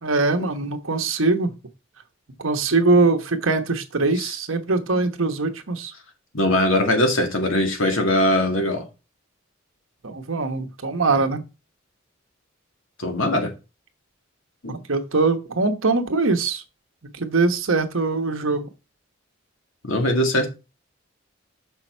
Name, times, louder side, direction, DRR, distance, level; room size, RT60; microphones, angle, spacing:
voice 1, 0.0-1.5 2.4-5.9 10.0-11.4 14.7-16.6 17.1-18.7, right 3 dB, 75° right, 1.1 m, -22 dB
voice 2, 6.3-8.8 13.0-13.5 14.6-14.7 19.8-20.5, left 1 dB, 75° left, 2.1 m, -21 dB
6.4 x 5.8 x 4.4 m
head